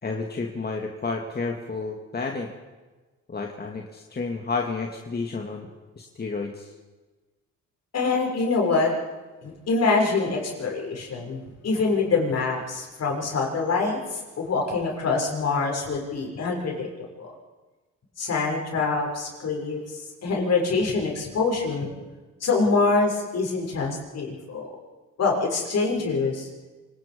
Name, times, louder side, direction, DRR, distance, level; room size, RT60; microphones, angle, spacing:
voice 1, 0.0-2.5 3.3-5.7 6.0-6.7, left 4 dB, 30° left, 2 dB, 2.3 m, -31 dB
voice 2, 7.9-8.9 9.4-16.9 17.2-17.3 18.2-21.9 22.4-24.7 25.2-26.5, left 4 dB, 55° left, 0 dB, 6.8 m, -25 dB
26.5 x 19.0 x 5.4 m, 1.2 s
cardioid pair, 90°, 30 cm